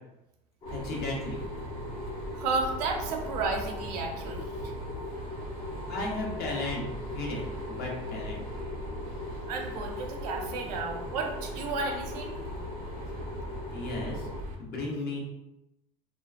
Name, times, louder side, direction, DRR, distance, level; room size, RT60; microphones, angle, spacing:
sound 1, 0.6-14.4, left 2 dB, 25° left, 0.5 m, -40 dB
voice 1, 0.7-1.4 5.9-8.4 13.7-14.3 14.6-15.2, left 2 dB, 50° left, -2 dB, 0.8 m, -35 dB
sound 2, 0.7-14.6, right 1 dB, 45° right, 0.6 m, -40 dB
voice 2, 2.3-4.5 9.5-12.4, right 4 dB, 85° right, 2 dB, 0.5 m, -32 dB
2.3 x 2.2 x 2.3 m, 0.93 s
supercardioid pair, 100°, 20 cm